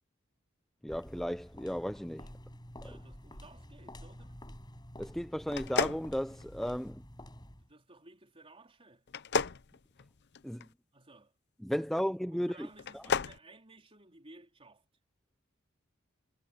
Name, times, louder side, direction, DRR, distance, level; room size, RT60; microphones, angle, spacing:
voice 1, 0.8-2.3 5.0-7.0 10.4-10.7 11.6-12.7 12.9-13.0, equal, ahead, 0.6 m, -34 dB
sound 1, 0.9-7.7, left 1 dB, 20° left, 7.5 m, -50 dB
voice 2, 2.8-4.4 7.6-9.1 10.9-11.3 11.8-14.8, right 2 dB, 30° right, 4.1 m, -57 dB
sound 2, 5.5-6.9 9.1-10.7 12.7-13.4, left 5 dB, 55° left, 0.7 m, -33 dB
head